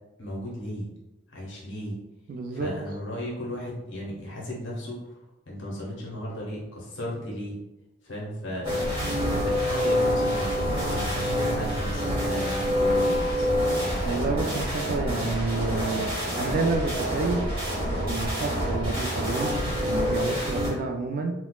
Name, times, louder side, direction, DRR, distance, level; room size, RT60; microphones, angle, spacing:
voice 1, 0.2-0.9 1.3-1.9 2.5-5.0 5.5-7.6 8.0-14.2, left 1 dB, 65° left, -4 dB, 0.8 m, -35 dB
voice 2, 2.3-2.7 14.0-17.4 18.1-21.3, right 3 dB, 45° right, 4 dB, 0.3 m, -29 dB
sound 1, 8.6-20.7, equal, 25° right, 1.0 m, -27 dB
sound 2, 13.9-19.4, right 3 dB, 35° left, 0.7 m, -36 dB
4.1 x 2.0 x 2.3 m, 0.99 s
head